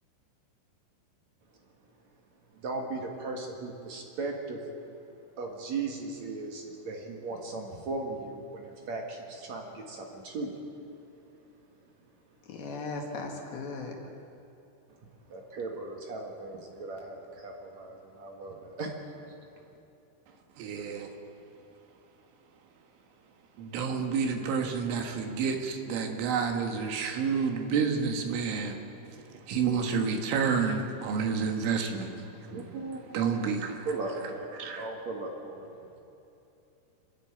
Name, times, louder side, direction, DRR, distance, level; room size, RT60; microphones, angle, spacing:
voice 1, 2.5-4.6 5.4-10.6 15.3-18.9 19.3-19.4 32.4-33.5 33.9-34.5 34.8-35.7, right 3 dB, 55° right, 1 dB, 2.2 m, -37 dB
voice 2, 12.5-13.9, left 3 dB, 60° left, 1 dB, 3.5 m, -37 dB
voice 3, 20.6-21.1 23.6-28.8 29.3-32.3 33.1-33.9 34.5-34.9, right 5 dB, 80° right, 4 dB, 4.1 m, -29 dB
27.5 x 11.0 x 8.9 m, 2.9 s
omnidirectional pair, 5.6 m